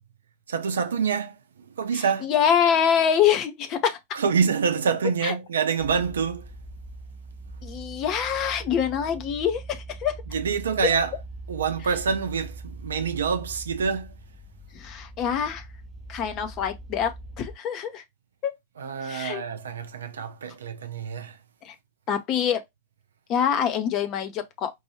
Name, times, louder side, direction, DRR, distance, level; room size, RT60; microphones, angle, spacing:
voice 1, 0.5-2.3 4.1-6.5 10.3-11.1 11.5-14.2 18.8-21.4, right 6 dB, 65° right, 0.6 m, -26 dB
voice 2, 1.9-4.0 5.2-5.3 7.6-10.1 10.8-10.9 14.7-15.6 16.1-17.1 17.4-18.0 18.4-18.5 19.0-19.4 21.6-21.7 22.1-22.6 23.3-24.7, left 8 dB, 35° left, 0.8 m, -25 dB
sound 1, 5.8-17.6, right 2 dB, 15° right, 0.8 m, -41 dB
4.6 x 2.6 x 3.0 m
figure-of-eight pair, 90°, 0 cm